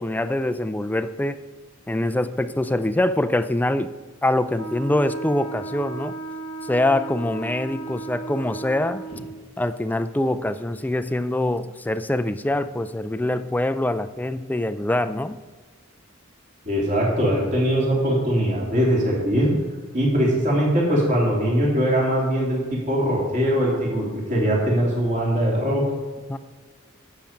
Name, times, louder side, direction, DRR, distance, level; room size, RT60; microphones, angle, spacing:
voice 1, 0.0-1.4 1.9-3.9 4.2-6.1 6.6-9.0 9.6-15.4 26.3-26.4, left 1 dB, 10° left, 12 dB, 0.4 m, -24 dB
Wind instrument woodwind instrument, 4.5-9.4, right 3 dB, 70° right, 1.3 m, -35 dB
voice 2, 16.6-19.5 19.9-25.8, equal, 40° right, -3 dB, 2.9 m, -21 dB
11.5 x 7.4 x 5.2 m, 1.4 s
head